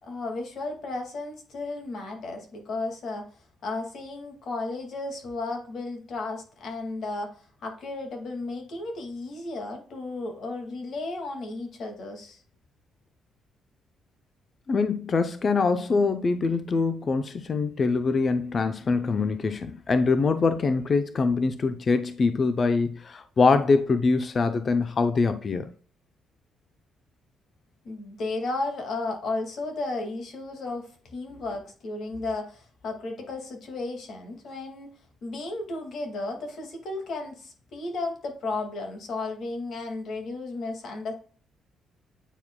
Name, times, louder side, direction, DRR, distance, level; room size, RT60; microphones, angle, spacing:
voice 1, 0.0-3.3 3.6-12.4 27.8-34.9 35.2-41.1, left 2 dB, 65° left, 2.1 m, -34 dB
voice 2, 14.7-25.7, left 4 dB, 40° left, 0.6 m, -24 dB
8.9 x 4.7 x 2.2 m
cardioid pair, 90°, 0 cm